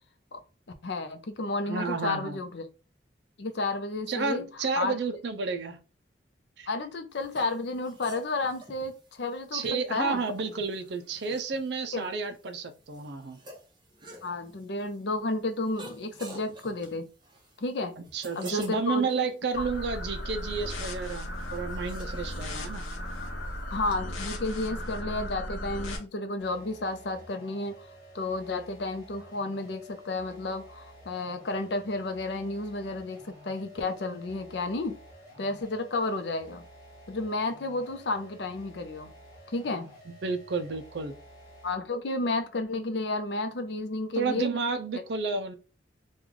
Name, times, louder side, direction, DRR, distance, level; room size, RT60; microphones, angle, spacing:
voice 1, 0.8-2.6 3.4-4.5 4.8-5.0 6.7-10.2 11.9-12.1 14.2-17.1 17.6-17.9 18.4-19.1 19.6-19.7 23.7-27.9 28.1-35.0 35.4-36.6 37.1-39.1 39.5-39.9 41.6-44.5, left 2 dB, 65° left, 0.6 m, -32 dB
voice 2, 1.7-2.4 4.1-5.8 6.6-6.7 9.5-13.4 18.0-22.8 40.2-41.1 44.2-45.6, right 4 dB, 60° right, 0.4 m, -31 dB
sound 1, 7.1-23.9, right 1 dB, 25° right, 0.8 m, -52 dB
sound 2, 19.5-26.0, left 1 dB, 90° left, 0.9 m, -36 dB
sound 3, 26.4-41.9, equal, 20° left, 1.0 m, -51 dB
3.1 x 2.3 x 3.7 m
head